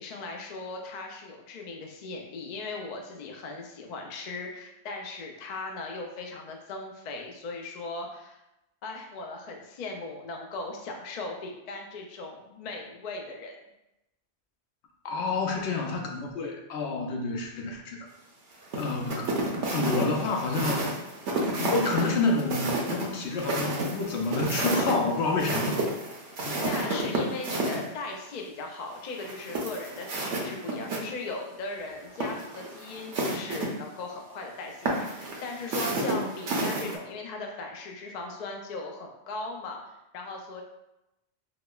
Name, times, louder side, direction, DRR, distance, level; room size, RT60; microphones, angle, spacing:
voice 1, 0.0-8.4 8.8-13.6 26.6-40.6, left 3 dB, 55° left, 2 dB, 0.5 m, -38 dB
voice 2, 15.0-18.1 18.8-19.4 19.7-20.9 21.6-25.8 26.5-26.6, left 3 dB, 75° left, 2 dB, 0.8 m, -29 dB
sound 1, 18.7-27.8 29.2-31.0 31.3-31.4 32.1-33.7 34.8-36.9, right 2 dB, 85° right, 1.0 m, -30 dB
5.0 x 2.0 x 2.3 m, 0.91 s
omnidirectional pair, 1.1 m